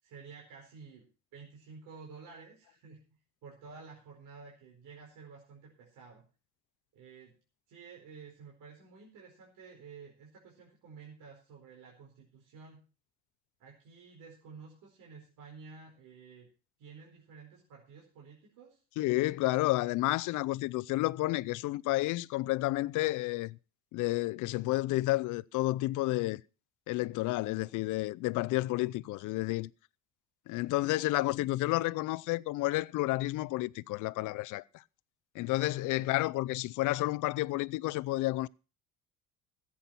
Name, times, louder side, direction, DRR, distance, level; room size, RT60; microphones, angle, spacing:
voice 1, 0.0-3.0 3.4-6.2 6.9-7.3 7.7-12.8 13.6-16.5 16.8-18.8 35.7-36.1, right 5 dB, 70° right, 4.7 m, -52 dB
voice 2, 19.0-23.6 23.9-26.4 26.9-29.7 30.5-34.8 35.3-38.5, left 18 dB, 65° left, 0.6 m, -31 dB
15.0 x 8.6 x 5.9 m
cardioid pair, 150°, 33 cm